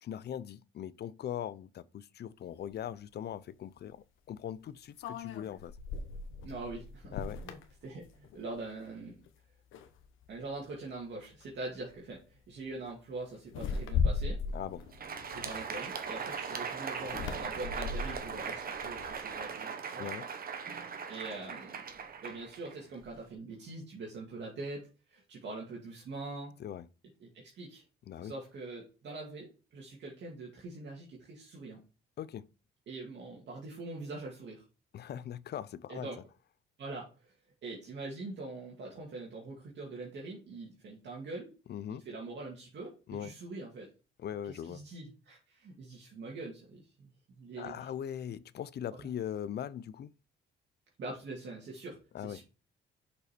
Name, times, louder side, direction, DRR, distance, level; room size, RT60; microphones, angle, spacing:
voice 1, 0.0-5.8 7.1-7.4 14.5-14.8 20.0-20.3 26.6-26.9 28.1-28.3 32.2-32.5 34.9-36.1 41.7-42.0 43.1-43.3 44.2-44.8 47.6-50.1 52.1-52.4, left 10 dB, 55° left, 0.6 m, -40 dB
sound 1, 2.7-2.8 5.0-8.6 9.0-9.3 9.7-10.4 11.2-11.4 11.8-12.1 13.5-16.1 17.0-19.4, left 5 dB, 85° left, 1.1 m, -37 dB
voice 2, 6.4-7.2 7.4-9.2 10.3-14.4 15.3-20.1 21.1-21.8 22.2-24.8 25.1-26.5 27.2-27.8 28.2-31.8 32.9-34.6 35.9-36.2 36.8-37.3 37.6-41.5 41.9-42.9 43.2-43.9 44.5-47.9 48.9-49.1 51.0-52.4, right 2 dB, 65° right, 2.3 m, -43 dB
Crowd, 14.8-23.3, right 6 dB, 50° right, 1.2 m, -40 dB
6.6 x 5.4 x 4.3 m
cardioid pair, 90°, 20 cm